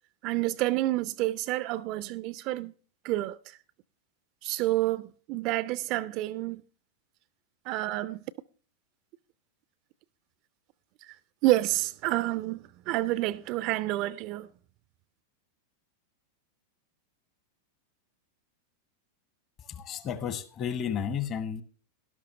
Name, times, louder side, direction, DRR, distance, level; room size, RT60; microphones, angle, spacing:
voice 1, 0.2-2.7 3.0-3.6 4.4-6.6 7.7-8.2 11.0-11.2 11.4-14.5, right 17 dB, 40° right, 0.4 m, -29 dB
voice 2, 19.6-21.6, left 8 dB, 30° left, 1.2 m, -32 dB
12.5 x 12.0 x 3.3 m
figure-of-eight pair, 90°, 0 cm